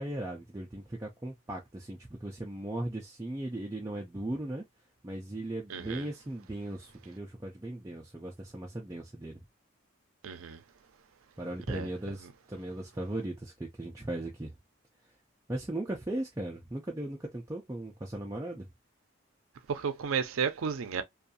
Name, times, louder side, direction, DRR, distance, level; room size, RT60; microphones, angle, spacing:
voice 1, 0.0-4.6 5.0-9.4 11.4-14.5 15.5-18.7, right 1 dB, 15° right, 0.3 m, -37 dB
voice 2, 5.7-6.1 10.2-10.6 11.7-11.9 19.7-21.0, right 6 dB, 75° right, 0.4 m, -32 dB
2.6 x 2.3 x 2.5 m
head